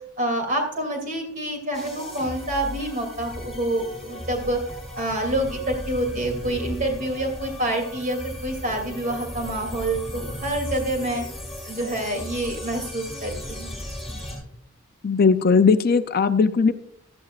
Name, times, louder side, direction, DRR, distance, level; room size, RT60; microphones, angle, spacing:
voice 1, 0.2-4.6 4.9-11.3 11.7-13.7, right 1 dB, 40° right, 3 dB, 2.7 m, -27 dB
sound 1, 1.7-14.4, left 1 dB, ahead, 4.4 m, -36 dB
voice 2, 15.0-16.7, left 5 dB, 45° left, 11 dB, 0.5 m, -18 dB
15.5 x 12.5 x 2.4 m, 0.71 s
head